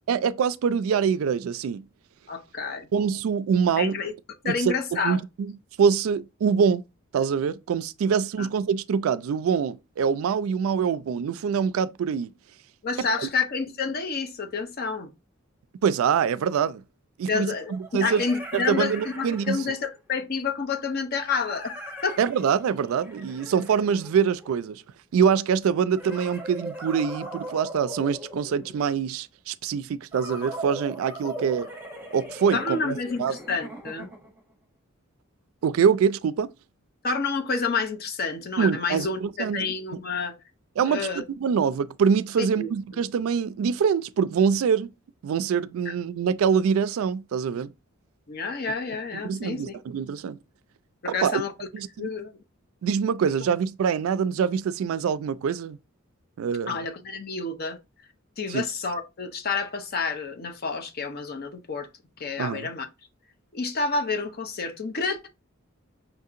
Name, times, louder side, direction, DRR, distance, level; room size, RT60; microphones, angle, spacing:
voice 1, 0.1-1.9 2.9-4.0 4.4-4.7 5.0-5.5 5.8-6.8 7.1-12.3 13.2-13.3 15.8-16.8 17.2-18.2 18.5-19.6 22.2-24.8 25.1-31.7 32.1-33.4 35.6-36.5 38.6-39.7 40.8-44.9 45.2-47.7 49.2-50.4 51.1-51.4 51.7-52.1 52.8-55.8 56.4-56.8 58.5-58.6 62.4-62.7, right 7 dB, 75° right, 0.3 m, -24 dB
voice 2, 2.3-2.9 3.8-4.1 4.4-5.2 8.4-8.5 12.8-15.1 17.3-21.7 22.0-22.2 32.5-34.1 37.0-40.3 40.8-41.2 42.4-42.7 45.9-46.0 48.3-49.8 51.0-51.5 52.0-52.3 56.7-57.8 58.4-61.9 62.2-62.9 63.5-65.3, left 4 dB, 45° left, 0.6 m, -29 dB
sound 1, 16.1-16.2 17.6-20.0 21.2-24.7 25.9-28.9 30.1-34.4, right 1 dB, 10° right, 0.9 m, -39 dB
5.7 x 2.7 x 2.4 m
head